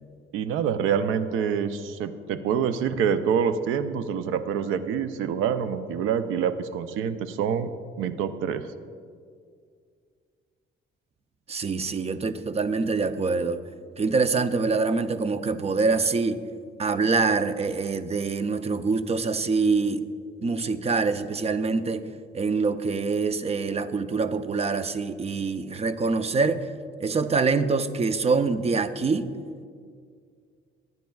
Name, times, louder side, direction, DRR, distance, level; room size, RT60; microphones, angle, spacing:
voice 1, 0.3-7.7 8.0-8.7, right 7 dB, 90° right, 12 dB, 0.5 m, -26 dB
voice 2, 11.5-13.6 14.0-16.4 16.8-20.0 20.4-22.1 22.3-26.7 27.0-29.3, right 4 dB, 30° right, 11 dB, 0.6 m, -25 dB
18.0 x 9.4 x 2.3 m, 2.1 s
cardioid pair, 90°, 20 cm